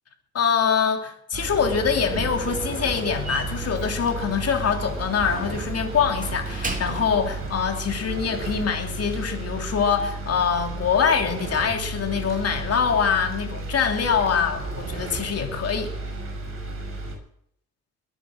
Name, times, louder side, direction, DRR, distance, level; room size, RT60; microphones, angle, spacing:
voice 1, 0.3-15.9, left 6 dB, 55° left, 4 dB, 3.3 m, -24 dB
sound 1, 1.3-17.2, right 2 dB, 45° right, 6.7 m, -33 dB
Slam, 1.4-7.6, right 3 dB, 25° right, 3.2 m, -36 dB
22.5 x 9.0 x 6.6 m, 0.71 s
cardioid pair, 90°, 30 cm